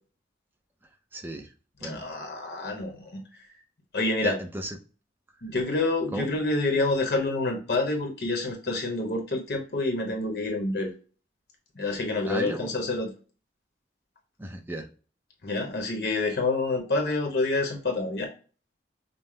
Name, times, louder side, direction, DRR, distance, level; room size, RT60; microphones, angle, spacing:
voice 1, 1.1-1.5 1.8-2.0 4.2-4.8 6.1-6.3 12.3-12.7 14.4-14.9, right 1 dB, 10° right, 5 dB, 0.5 m, -34 dB
voice 2, 1.8-3.2 3.9-4.4 5.4-10.9 11.7-13.1 15.4-18.3, left 2 dB, 60° left, 2 dB, 0.9 m, -28 dB
5.4 x 2.0 x 3.2 m, 0.36 s
head